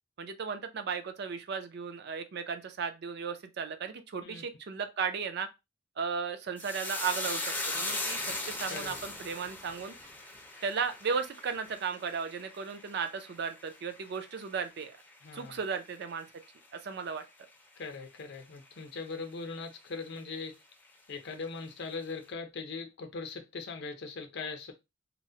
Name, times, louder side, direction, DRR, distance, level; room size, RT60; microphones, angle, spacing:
voice 1, 0.2-5.5 6.0-9.9 10.6-14.9 15.3-16.3 16.7-17.2, right 6 dB, 60° right, 0.4 m, -35 dB
sound 1, 6.6-15.2 15.5-16.1 16.4-16.7, left 2 dB, 10° left, 0.4 m, -39 dB
voice 2, 15.2-15.6 17.8-20.6 21.1-24.7, left 4 dB, 60° left, 0.6 m, -40 dB
2.8 x 2.1 x 2.7 m
head